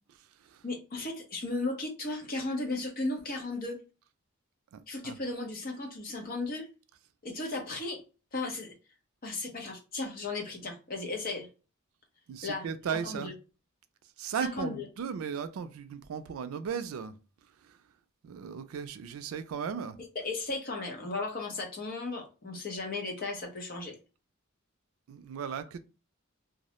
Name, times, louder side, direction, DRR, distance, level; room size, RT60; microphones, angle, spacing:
voice 1, 0.6-3.8 4.9-6.7 7.2-8.0 8.3-8.7 9.2-11.5 12.4-12.7 12.9-13.3 14.4-14.9 20.1-24.0, left 3 dB, 45° left, 0.7 m, -35 dB
voice 2, 4.7-5.1 12.3-13.3 14.2-17.1 18.2-20.0 25.1-25.8, right 6 dB, 80° right, 0.3 m, -36 dB
2.3 x 2.0 x 2.8 m
head